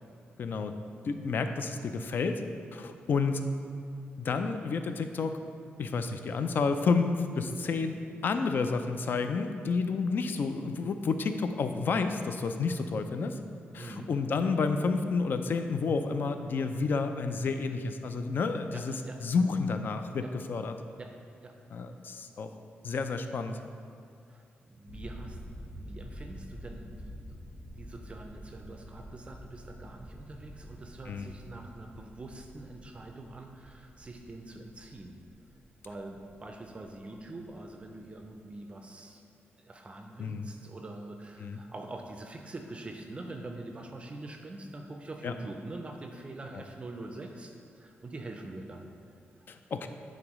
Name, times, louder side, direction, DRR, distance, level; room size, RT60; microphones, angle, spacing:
voice 1, 0.4-0.7 1.0-2.4 2.7-3.4 4.2-5.4 5.8-13.4 13.7-18.9 19.2-20.7 21.7-22.5 22.8-23.6 31.1-31.3 40.2-40.5 41.4-41.6 45.2-45.3 46.5-46.6 49.5-49.9, left 4 dB, 55° left, 8 dB, 0.4 m, -30 dB
voice 2, 13.8-14.1 18.7-19.2 20.2-20.3 21.0-21.6 24.3-25.4 25.7-35.2 35.8-39.2 39.6-48.9, right 2 dB, 30° right, 3 dB, 0.4 m, -44 dB
sound 1, 24.9-38.5, equal, 75° left, 1.0 m, -48 dB
9.6 x 3.9 x 3.1 m, 2.3 s
wide cardioid pair, 135°, 4 cm